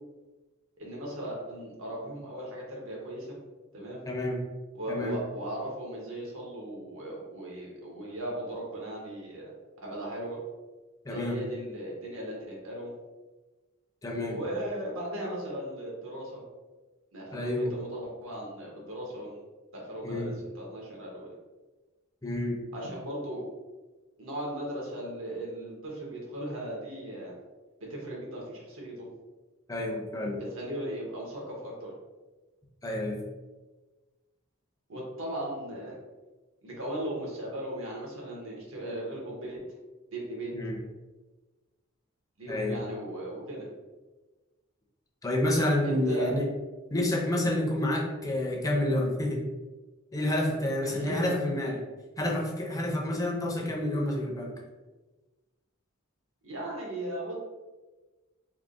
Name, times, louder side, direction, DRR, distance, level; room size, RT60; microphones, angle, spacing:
voice 1, 0.8-3.4 3.7-4.0 4.8-9.5 9.8-10.4 11.1-12.9 14.3-16.4 17.1-19.3 19.7-21.3 22.7-23.4 24.2-27.3 27.9-29.1 30.4-31.9 34.9-36.0 36.6-39.6 40.1-40.5 42.4-43.7 45.8-46.3 50.8-51.3 56.4-57.4, right 1 dB, 70° right, -3 dB, 1.2 m, -37 dB
voice 2, 4.1-4.4 4.9-5.2 11.0-11.4 14.0-14.4 17.3-17.7 20.0-20.4 22.2-22.6 29.7-30.4 32.8-33.2 40.5-40.8 42.5-42.8 45.2-46.5 46.9-49.4 50.1-51.8 52.2-54.6, left 1 dB, 15° left, -1 dB, 0.7 m, -29 dB
3.5 x 2.2 x 3.8 m, 1.2 s
head